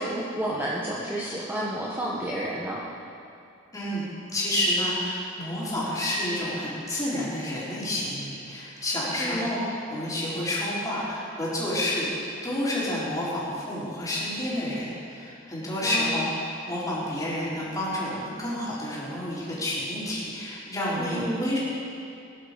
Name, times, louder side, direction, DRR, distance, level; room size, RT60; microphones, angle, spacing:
voice 1, 0.0-2.8 9.2-9.5 15.8-16.2 21.0-21.6, right 1 dB, 10° right, -6 dB, 1.3 m, -31 dB
voice 2, 3.7-4.0 4.3-21.6, left 1 dB, 15° left, -8 dB, 4.4 m, -29 dB
20.0 x 11.0 x 5.2 m, 2.5 s
head